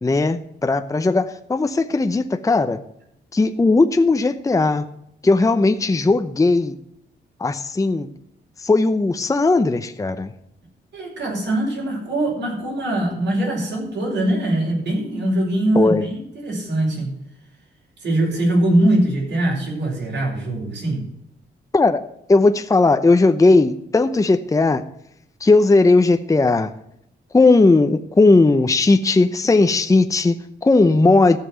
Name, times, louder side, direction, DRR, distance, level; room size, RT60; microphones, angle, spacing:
voice 1, 0.0-2.8 3.3-4.8 5.2-6.7 7.4-8.1 8.6-10.3 15.7-16.1 21.7-24.8 25.4-26.7 27.3-31.4, left 3 dB, 15° left, 8 dB, 0.7 m, -17 dB
voice 2, 10.9-17.1 18.0-21.1, right 1 dB, 70° right, -3 dB, 6.3 m, -22 dB
14.5 x 5.8 x 8.0 m, 0.76 s
cardioid pair, 90°, 19 cm